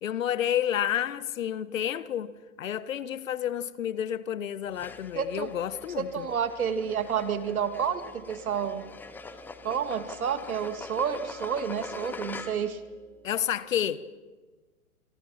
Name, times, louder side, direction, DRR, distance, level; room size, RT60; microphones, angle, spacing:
voice 1, 0.0-2.3 2.6-6.3 13.2-14.1, left 10 dB, 65° left, 1.3 m, -30 dB
sound 1, 4.7-12.8, left 4 dB, 5° left, 0.7 m, -43 dB
voice 2, 5.2-5.5 6.0-8.9 9.6-12.8, right 7 dB, 80° right, 2.3 m, -30 dB
sound 2, 6.0-13.9, right 6 dB, 15° right, 4.1 m, -56 dB
26.5 x 26.0 x 5.8 m
hypercardioid pair, 140°, 42 cm